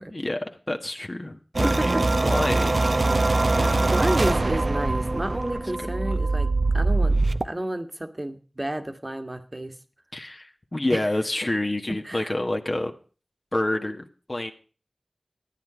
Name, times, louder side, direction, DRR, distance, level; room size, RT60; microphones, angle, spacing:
voice 1, 0.1-1.9 2.2-3.0 3.5-4.0 6.0-6.2 10.1-12.9 13.5-14.5, left 1 dB, 40° left, 4 dB, 1.4 m, -28 dB
sound 1, 1.5-7.4, right 2 dB, 60° right, 0.7 m, -22 dB
voice 2, 3.9-6.5 6.7-7.2 7.4-9.7 10.9-11.0 12.0-12.3, right 1 dB, 30° right, 8 dB, 1.6 m, -30 dB
13.0 x 9.7 x 5.0 m, 0.38 s
wide cardioid pair, 50°, 0 cm